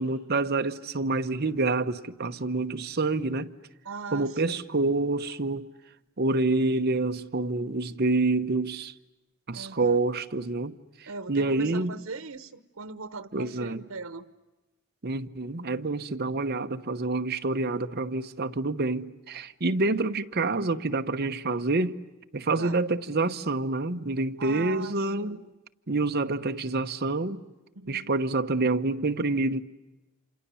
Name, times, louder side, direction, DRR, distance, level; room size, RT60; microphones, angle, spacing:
voice 1, 0.0-3.5 4.1-5.7 6.2-8.9 9.5-11.9 13.3-13.8 15.0-22.0 22.3-25.4 25.9-27.4 27.9-29.6, right 3 dB, 50° right, 1.0 m, -27 dB
voice 2, 3.8-4.7 9.5-10.0 11.1-14.3 22.6-22.8 24.4-25.5 27.8-28.1, right 4 dB, 90° right, 1.1 m, -39 dB
28.5 x 27.5 x 7.0 m
head